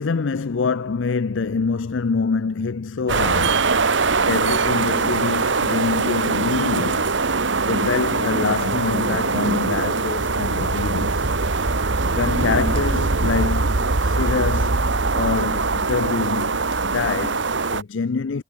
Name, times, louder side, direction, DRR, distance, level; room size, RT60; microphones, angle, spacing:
voice 1, 0.0-3.8 4.2-7.2 7.7-11.3 11.7-14.9 15.1-18.4, left 4 dB, 75° left, 0.5 m, -25 dB
sound 1, 3.1-17.8, right 3 dB, 65° right, 1.4 m, -22 dB
head